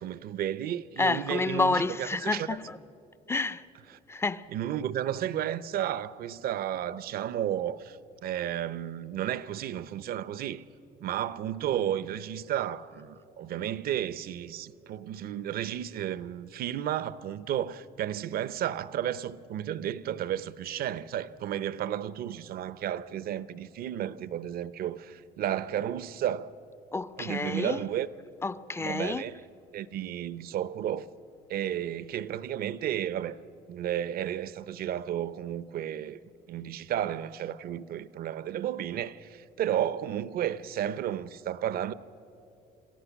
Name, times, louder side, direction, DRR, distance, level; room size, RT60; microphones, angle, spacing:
voice 1, 0.0-2.5 3.9-4.0 4.5-10.6 11.0-26.5 27.2-28.1 28.8-29.4 29.7-31.1 31.5-33.4 33.7-36.2 36.5-41.9, right 11 dB, 65° right, 0.7 m, -32 dB
voice 2, 1.0-2.8 3.3-3.6 4.1-4.4 26.9-27.8 28.4-29.2, left 3 dB, 15° left, 0.5 m, -29 dB
26.5 x 15.0 x 7.2 m
cardioid pair, 110°, 17 cm